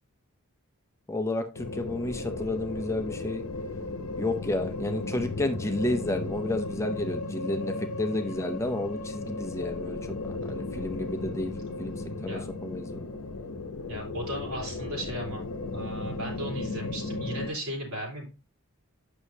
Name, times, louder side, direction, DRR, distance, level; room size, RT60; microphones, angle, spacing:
voice 1, 1.1-3.4 4.2-10.2 10.4-11.5 11.8-11.9 12.2-13.1, left 2 dB, 15° left, 6 dB, 0.5 m, -31 dB
sound 1, 1.5-17.5, left 2 dB, 85° left, 0.7 m, -35 dB
voice 2, 10.7-11.1 12.3-12.5 13.9-15.4 15.7-18.3, right 1 dB, 75° right, -1 dB, 3.5 m, -36 dB
8.2 x 6.1 x 2.7 m, 0.32 s
head